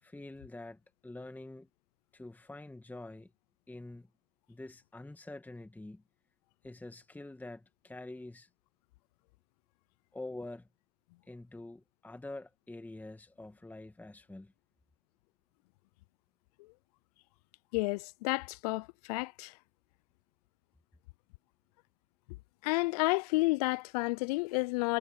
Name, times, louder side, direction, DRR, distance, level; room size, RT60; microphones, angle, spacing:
voice 1, 0.0-1.7 2.1-3.3 3.7-4.1 4.5-6.0 6.6-8.5 10.1-10.7 11.3-14.5, left 2 dB, 5° left, 2.0 m, -46 dB
voice 2, 17.7-19.5 22.6-25.0, left 24 dB, 30° left, 0.5 m, -31 dB
hypercardioid pair, 110°, 44 cm